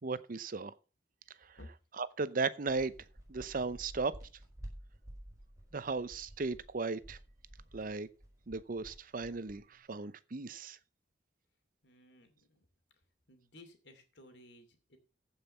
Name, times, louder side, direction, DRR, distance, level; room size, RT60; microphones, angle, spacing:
voice 1, 0.0-0.7 2.0-2.9 3.3-4.1 5.7-7.2 7.7-8.1 8.5-10.8, right 4 dB, 50° right, 0.7 m, -36 dB
sound 1, 2.7-9.8, right 1 dB, 20° right, 4.7 m, -52 dB
voice 2, 11.8-12.7 13.3-15.0, left 1 dB, 90° left, 2.8 m, -56 dB
15.0 x 5.6 x 5.6 m
head